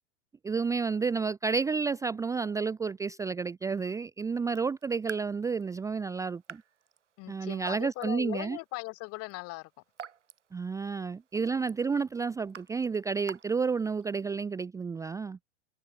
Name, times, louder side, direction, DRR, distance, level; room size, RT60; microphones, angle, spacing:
voice 1, 0.4-6.6 7.3-8.6 10.5-15.4, right 5 dB, 10° right, 0.6 m, -31 dB
Raindrop / Drip, 4.4-14.3, right 8 dB, 75° right, 2.9 m, -51 dB
voice 2, 7.2-9.7, left 23 dB, 40° left, 3.5 m, -39 dB
figure-of-eight pair, 95°, 36 cm